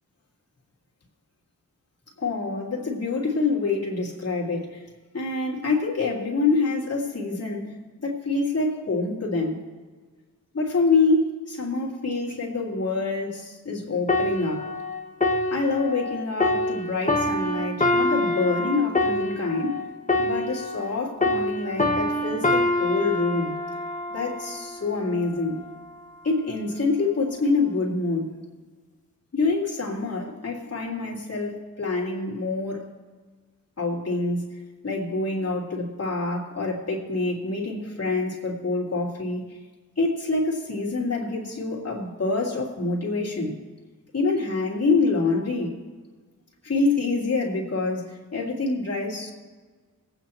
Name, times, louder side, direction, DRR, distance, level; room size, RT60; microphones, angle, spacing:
voice 1, 2.2-4.8 5.1-9.6 10.5-14.7 15.5-19.9 20.2-23.5 24.1-25.6 26.2-28.4 29.3-32.9 33.8-39.6 40.0-43.6 44.1-45.8 46.6-49.3, left 3 dB, 45° left, -3 dB, 3.1 m, -26 dB
sound 1, 14.1-20.9 21.2-24.8 25.4-25.6, left 1 dB, 20° left, 1.3 m, -25 dB
23.0 x 9.0 x 3.0 m, 1.4 s
cardioid pair, 75°, 34 cm